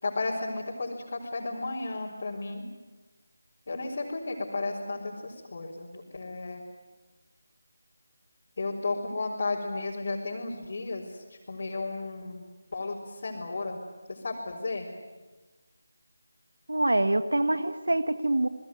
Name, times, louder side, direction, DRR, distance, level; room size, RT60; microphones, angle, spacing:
voice 1, 0.0-2.6 3.7-6.6 8.6-11.1 11.5-13.0 13.2-13.8 14.1-14.9, left 3 dB, 50° left, -4 dB, 4.6 m, -33 dB
voice 2, 16.7-18.5, right 1 dB, 85° right, 12 dB, 1.5 m, -25 dB
29.0 x 20.0 x 9.5 m, 1.2 s
figure-of-eight pair, 165°, 0 cm